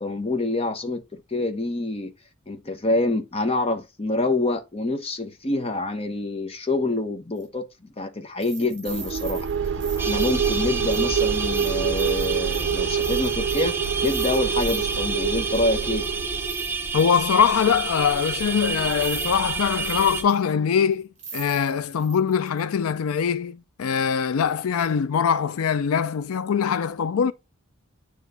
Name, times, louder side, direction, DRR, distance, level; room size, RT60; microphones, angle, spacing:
voice 1, 0.0-2.1 2.5-9.4 9.9-16.1, left 2 dB, 30° left, 0.9 m, -26 dB
sound 1, 7.4-7.5 8.4-15.1 15.5-15.6 16.0-17.3 18.1-18.2 18.7-19.4 19.6-20.5 20.9-21.0 21.2-22.6 23.0-23.1, right 5 dB, 35° right, 3.6 m, -41 dB
sound 2, 8.9-16.6, right 7 dB, 60° right, 0.5 m, -26 dB
sound 3, 10.0-20.2, right 4 dB, 10° right, 0.6 m, -29 dB
voice 2, 16.9-27.3, left 7 dB, 85° left, 0.4 m, -22 dB
9.2 x 3.1 x 3.9 m
head